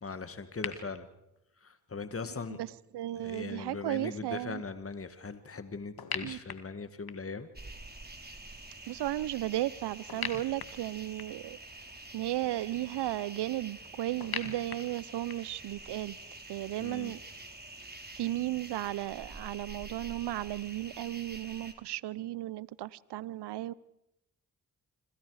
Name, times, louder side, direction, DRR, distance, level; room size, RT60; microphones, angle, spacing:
voice 1, 0.0-1.1 1.6-2.6 3.1-7.5 16.8-17.2, left 4 dB, 35° left, 1.8 m, -40 dB
sound 1, 0.6-0.7 6.0-7.4 10.1-11.5 14.2-15.6, left 7 dB, 60° left, 2.1 m, -40 dB
voice 2, 2.9-4.6 6.2-6.4 8.9-11.6 12.1-16.2 16.5-17.2 18.1-23.7, right 15 dB, 75° right, 0.7 m, -35 dB
sound 2, 7.6-21.7, right 2 dB, 25° right, 3.5 m, -47 dB
27.0 x 25.5 x 4.9 m
supercardioid pair, 40°, 41 cm